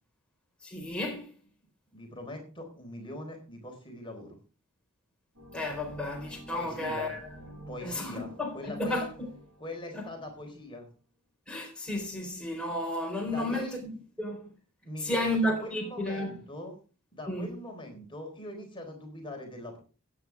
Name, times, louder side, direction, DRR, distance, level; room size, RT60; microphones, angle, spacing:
voice 1, 0.6-1.3 5.5-7.2 7.8-9.3 9.9-10.1 11.5-13.9 14.2-14.5 15.0-16.4 17.3-17.5, left 1 dB, 5° left, 4.1 m, -32 dB
voice 2, 1.9-4.4 6.5-7.1 7.7-9.1 9.6-10.9 13.3-13.8 14.8-16.8 17.1-19.8, left 1 dB, 25° left, 4.2 m, -42 dB
sound 1, 5.3-10.7, equal, 85° right, 7.8 m, -50 dB
16.5 x 9.3 x 3.5 m
head